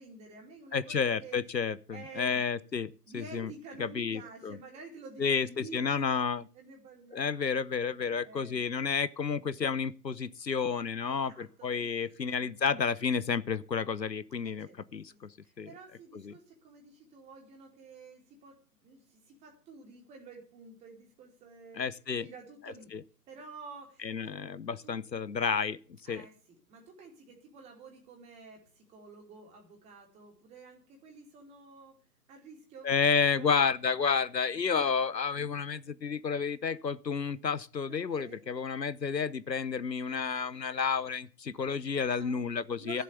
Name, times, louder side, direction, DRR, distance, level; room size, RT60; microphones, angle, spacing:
voice 1, 0.0-1.4 1.9-2.5 3.1-6.2 6.5-7.6 8.2-8.6 11.0-12.5 14.4-18.6 18.8-21.8 22.1-22.9 23.3-24.3 24.8-24.9 26.0-26.3 26.7-32.0 32.3-33.5 37.9-38.5 42.1-43.0, right 4 dB, 15° right, 2.9 m, -50 dB
voice 2, 0.7-3.5 3.8-4.6 5.2-6.4 7.1-15.7 16.1-16.3 21.7-22.3 22.9-23.0 24.0-25.8 26.1-26.2 32.8-43.0, left 6 dB, 85° left, 1.0 m, -31 dB
13.5 x 7.6 x 6.9 m
figure-of-eight pair, 140°, 49 cm